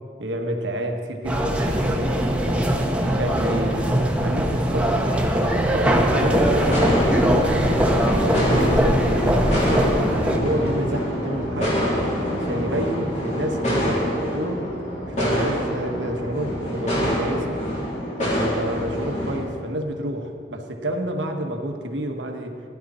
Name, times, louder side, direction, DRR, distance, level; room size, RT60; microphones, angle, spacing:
voice 1, 0.2-2.7 3.0-9.6 10.2-11.8 12.3-14.6 15.1-17.6 18.2-22.6, right 1 dB, 80° right, 3 dB, 1.3 m, -29 dB
sound 1, 1.2-10.4, equal, 5° right, 1.0 m, -21 dB
sound 2, 6.1-19.4, equal, 40° left, 3.3 m, -25 dB
15.5 x 11.0 x 4.3 m, 2.5 s
head